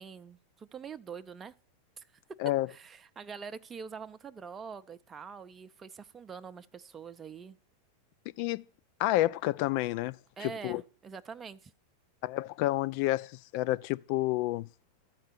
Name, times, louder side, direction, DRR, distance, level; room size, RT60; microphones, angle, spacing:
voice 1, 0.0-1.5 2.0-2.1 2.7-7.6 10.4-11.7, right 6 dB, 25° right, 0.5 m, -44 dB
voice 2, 9.0-10.2 10.4-10.8 12.2-14.7, left 16 dB, 55° left, 0.4 m, -29 dB
13.0 x 4.5 x 6.7 m
hypercardioid pair, 95°, 0 cm